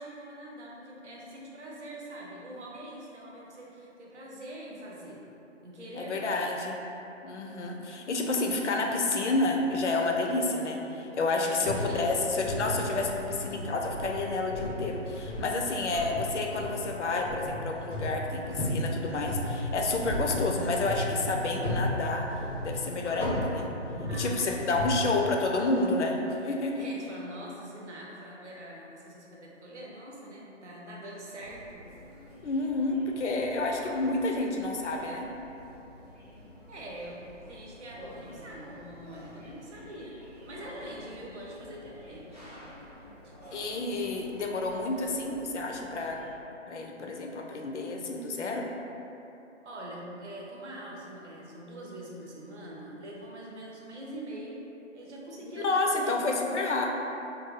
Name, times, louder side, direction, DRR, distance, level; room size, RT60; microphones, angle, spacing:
voice 1, 0.0-5.2 5.6-6.7 11.4-12.1 24.0-25.1 26.8-31.8 36.7-40.2 40.5-42.4 43.2-43.3 49.6-54.6 54.9-56.2, right 1 dB, 65° right, -4 dB, 0.8 m, -43 dB
voice 2, 5.9-6.8 7.2-22.2 22.6-23.7 24.1-26.8 32.4-35.3 43.5-46.2 46.7-48.7 55.4-56.9, left 2 dB, 65° left, 1 dB, 0.5 m, -29 dB
sound 1, 11.6-24.9, left 1 dB, 10° right, 0.8 m, -35 dB
sound 2, 31.4-46.3, left 1 dB, 35° right, 0.4 m, -50 dB
2.6 x 2.3 x 3.9 m, 3.0 s
hypercardioid pair, 170°, 37 cm